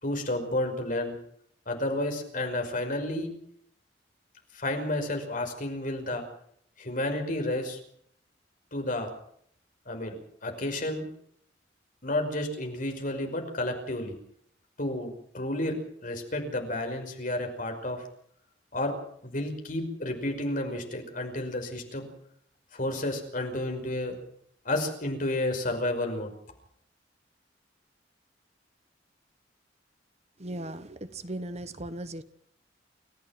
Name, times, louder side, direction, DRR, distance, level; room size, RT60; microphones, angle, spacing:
voice 1, 0.0-1.2 1.7-3.3 4.5-6.2 6.8-7.8 8.7-9.1 9.9-11.1 12.0-14.2 14.8-15.8 16.0-18.1 18.7-19.0 19.2-22.1 22.7-24.2 24.6-26.3, left 1 dB, 50° left, 4 dB, 5.5 m, -31 dB
voice 2, 30.4-32.2, right 1 dB, 35° right, 12 dB, 1.1 m, -37 dB
29.0 x 15.0 x 6.0 m, 0.67 s
head